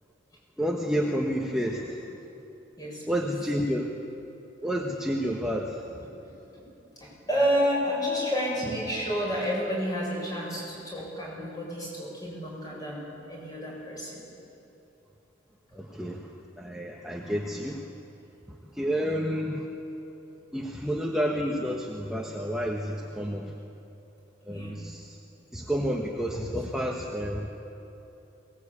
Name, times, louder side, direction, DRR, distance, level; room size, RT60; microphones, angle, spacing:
voice 1, 0.6-2.2 3.1-3.9 4.6-5.8 15.7-17.9 18.6-19.7 20.5-23.5 24.4-25.2 25.5-27.5, equal, 5° right, -1 dB, 1.2 m, -30 dB
voice 2, 7.0-14.2 17.2-17.4 19.0-19.2 24.5-24.8 26.3-26.4, equal, 20° left, -4 dB, 7.3 m, -30 dB
22.5 x 19.0 x 8.4 m, 3.0 s
head